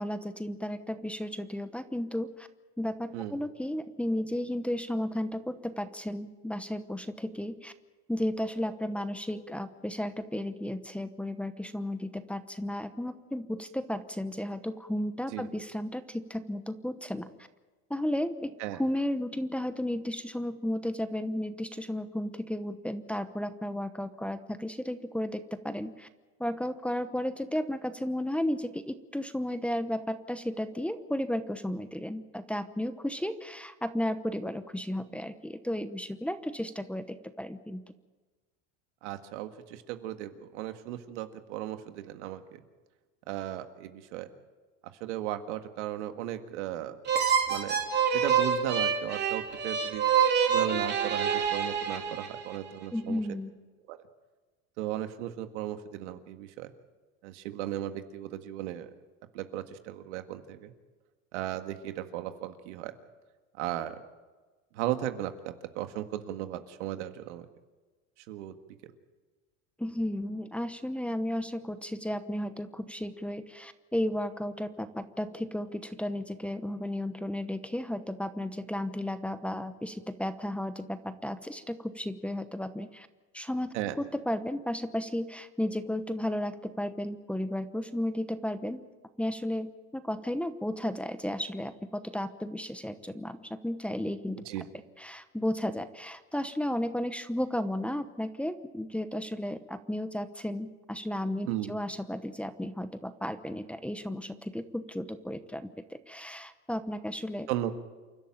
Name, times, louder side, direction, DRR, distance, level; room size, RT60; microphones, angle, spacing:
voice 1, 0.0-2.5 2.8-7.7 8.1-17.3 17.9-26.1 26.4-37.8 52.9-53.5 69.8-83.1 83.3-88.8 89.2-94.4 95.0-105.7 106.1-107.5, left 1 dB, 5° left, 11 dB, 1.0 m, -34 dB
voice 2, 39.0-42.6 43.3-44.3 45.0-47.0 47.5-47.8 48.1-50.1 50.5-53.2 53.9-54.0 54.8-56.7 57.2-58.9 59.3-60.7 61.3-62.9 63.6-64.0 64.7-67.5 68.3-68.6 68.8-68.9 83.7-83.9 94.5-94.7 101.5-101.8 107.5-107.7, right 13 dB, 85° right, 8 dB, 1.9 m, -36 dB
sound 1, 47.1-52.6, right 7 dB, 30° right, 2.9 m, -27 dB
28.5 x 12.0 x 8.9 m, 1.3 s
supercardioid pair, 125°, 34 cm